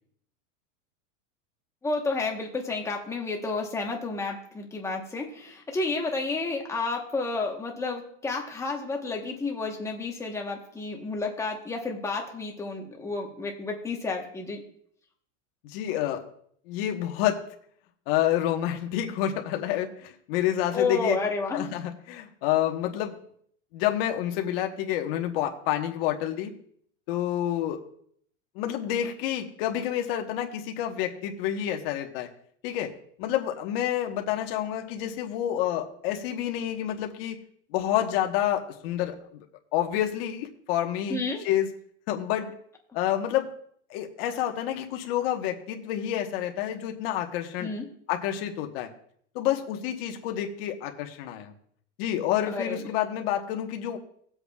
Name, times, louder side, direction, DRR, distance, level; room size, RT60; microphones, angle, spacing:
voice 1, 1.8-14.6 20.7-21.7 41.1-41.5 47.6-47.8 52.5-52.9, left 3 dB, 10° left, 1 dB, 1.1 m, -31 dB
voice 2, 15.6-16.2 16.7-17.4 18.1-21.2 21.5-23.1 23.7-26.5 27.1-27.8 28.5-32.3 32.6-32.9 33.2-37.4 37.7-39.5 39.7-41.7 42.1-42.5 42.9-43.5 43.9-47.7 48.1-48.9 49.3-51.5 52.0-54.0, left 11 dB, 50° left, 4 dB, 1.2 m, -28 dB
17.5 x 8.0 x 2.4 m, 0.64 s
supercardioid pair, 160°, 37 cm